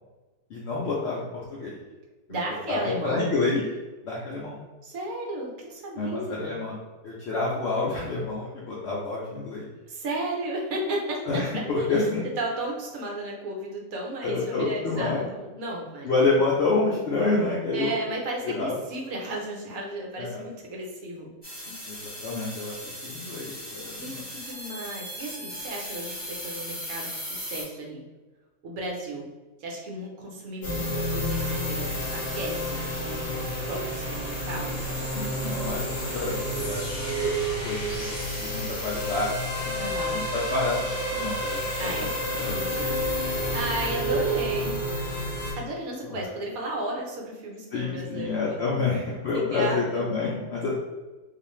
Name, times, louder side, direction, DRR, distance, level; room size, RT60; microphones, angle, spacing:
voice 1, 0.5-1.8 2.7-3.6 4.0-4.6 6.0-6.7 7.0-9.7 11.3-12.3 14.2-15.3 16.0-17.9 18.4-18.8 20.2-20.4 21.9-24.2 35.1-36.8 37.6-42.1 42.4-42.7 46.0-46.2 47.7-50.8, left 3 dB, 70° left, -6 dB, 0.6 m, -28 dB
voice 2, 2.3-3.2 4.8-6.6 9.9-11.4 11.8-11.9 12.2-16.4 17.7-21.3 21.6-21.8 24.0-28.0 28.6-29.3 29.6-35.3 39.8-40.2 41.8-43.0 43.5-44.8 45.6-48.9 49.3-50.4, right 1 dB, 70° right, -2 dB, 1.0 m, -34 dB
sound 1, 21.4-27.6, equal, 10° left, 0.7 m, -38 dB
sound 2, 30.6-45.5, equal, 40° left, 0.9 m, -29 dB
2.4 x 2.4 x 3.0 m, 1.2 s
omnidirectional pair, 1.6 m